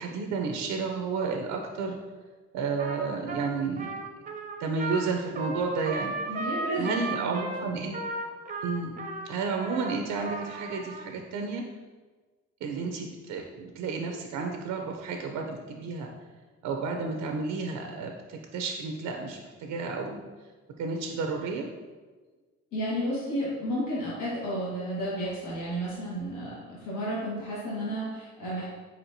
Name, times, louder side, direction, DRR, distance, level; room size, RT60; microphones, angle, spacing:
voice 1, 0.0-2.0 2.5-3.9 4.6-6.4 6.8-8.0 8.6-8.9 9.2-11.6 12.6-16.1 16.6-20.2 20.8-21.7, right 4 dB, 90° right, 3 dB, 0.5 m, -31 dB
Trumpet, 2.8-11.0, right 2 dB, 25° right, 0.5 m, -35 dB
voice 2, 6.3-7.7 22.7-28.7, equal, 85° left, -7 dB, 1.4 m, -32 dB
4.3 x 4.2 x 2.6 m, 1.4 s
cardioid pair, 90°, 30 cm